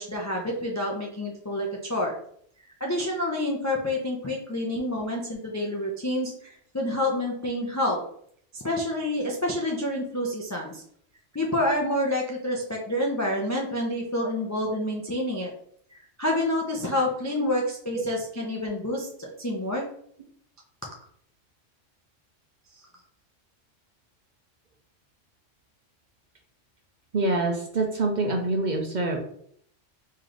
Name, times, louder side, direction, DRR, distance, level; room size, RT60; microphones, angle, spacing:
voice 1, 0.0-2.1 2.8-8.0 8.5-10.8 11.3-15.5 16.2-19.8, left 1 dB, 30° left, -2 dB, 0.3 m, -28 dB
voice 2, 27.1-29.2, right 2 dB, 50° right, 2 dB, 0.6 m, -26 dB
3.2 x 3.2 x 3.8 m, 0.64 s
omnidirectional pair, 1.3 m